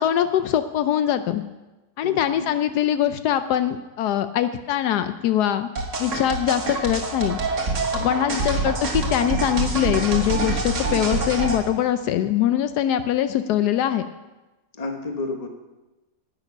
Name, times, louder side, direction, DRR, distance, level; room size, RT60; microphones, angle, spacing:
voice 1, 0.0-1.4 2.0-5.7 6.0-7.4 7.9-14.0, left 11 dB, 80° left, 10 dB, 1.1 m, -22 dB
voice 2, 2.0-2.5 8.0-8.4 14.7-15.5, left 3 dB, 25° left, 4 dB, 1.1 m, -32 dB
sound 1, 5.8-11.6, right 3 dB, 50° right, 1.6 m, -26 dB
10.5 x 9.1 x 5.6 m, 1.1 s
omnidirectional pair, 1.8 m